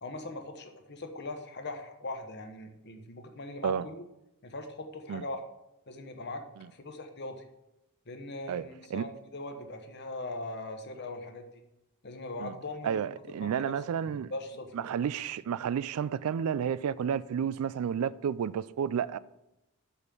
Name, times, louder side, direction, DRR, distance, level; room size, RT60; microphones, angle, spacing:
voice 1, 0.0-4.0 4.4-5.4 5.9-6.4 6.7-7.4 8.1-11.5 12.0-13.0 13.4-13.7 14.1-14.9, left 2 dB, 50° left, 1.0 m, -40 dB
voice 2, 12.8-14.3 14.7-19.2, right 8 dB, 75° right, 0.3 m, -31 dB
6.1 x 5.5 x 7.0 m
head